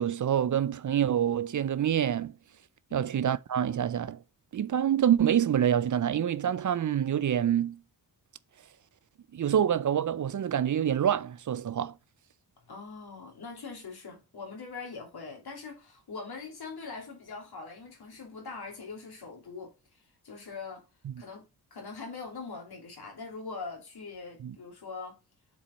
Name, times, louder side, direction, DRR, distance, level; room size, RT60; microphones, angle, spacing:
voice 1, 0.0-2.3 2.9-4.2 4.5-7.8 9.3-11.9 24.4-24.5, right 9 dB, 50° right, 0.5 m, -26 dB
voice 2, 12.7-20.8 21.2-25.2, left 4 dB, 75° left, 3.2 m, -42 dB
7.2 x 4.5 x 5.2 m
cardioid pair, 50°, 38 cm